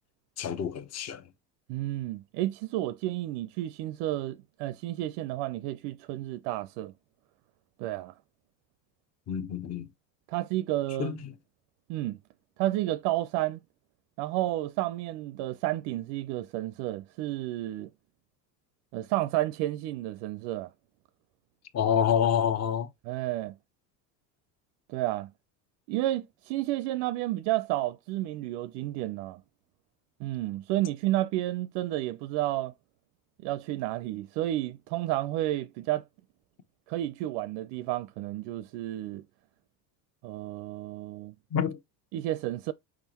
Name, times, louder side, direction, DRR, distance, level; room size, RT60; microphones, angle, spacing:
voice 1, 0.4-1.2 9.3-9.9 11.0-11.3 21.7-22.9 41.5-41.8, left 8 dB, 30° left, 0.8 m, -27 dB
voice 2, 1.7-6.9 7.8-8.1 10.3-11.2 11.9-12.2 12.6-13.6 14.2-17.9 18.9-20.7 23.1-23.5 24.9-25.3 25.9-29.4 30.2-32.7 33.4-36.0 36.9-39.2 40.2-41.3 42.1-42.7, right 15 dB, 55° right, 0.5 m, -31 dB
5.0 x 3.6 x 2.9 m
hypercardioid pair, 90°, 49 cm